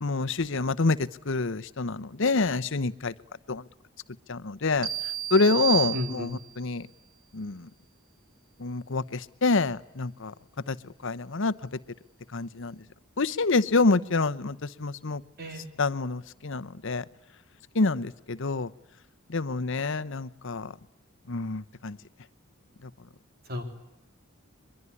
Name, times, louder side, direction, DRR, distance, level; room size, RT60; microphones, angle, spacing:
voice 1, 0.0-1.0 1.3-3.1 3.5-3.6 4.3-4.9 5.3-6.8 7.3-7.6 8.6-9.0 9.4-10.3 10.7-10.8 11.0-11.5 12.3-12.7 13.2-15.2 15.8-17.0 17.8-18.7 19.3-20.7 21.3-22.0, left 3 dB, 65° left, 16 dB, 0.9 m, -26 dB
sound 1, 4.8-6.6, right 12 dB, 90° right, 3.5 m, -31 dB
voice 2, 5.9-6.3 15.4-15.6 23.5-23.6, left 2 dB, 50° right, 6 dB, 3.6 m, -33 dB
23.5 x 22.5 x 9.8 m, 0.87 s
head